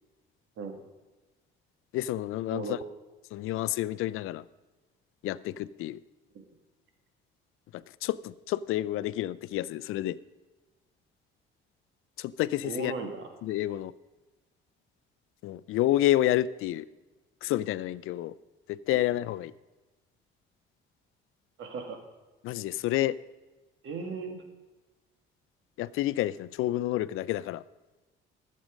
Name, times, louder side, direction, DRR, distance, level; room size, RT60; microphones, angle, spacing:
voice 1, 1.9-2.8 3.3-4.5 5.2-6.0 7.7-10.2 12.2-12.9 13.4-13.9 15.4-16.9 17.4-18.4 18.7-19.5 22.4-23.2 25.8-27.6, left 14 dB, 80° left, 19 dB, 0.5 m, -29 dB
voice 2, 12.6-13.3 18.9-19.1 21.6-22.0 23.8-24.4, right 4 dB, 65° right, 5 dB, 2.1 m, -36 dB
14.5 x 7.6 x 5.1 m, 1.2 s
cardioid pair, 95°, 21 cm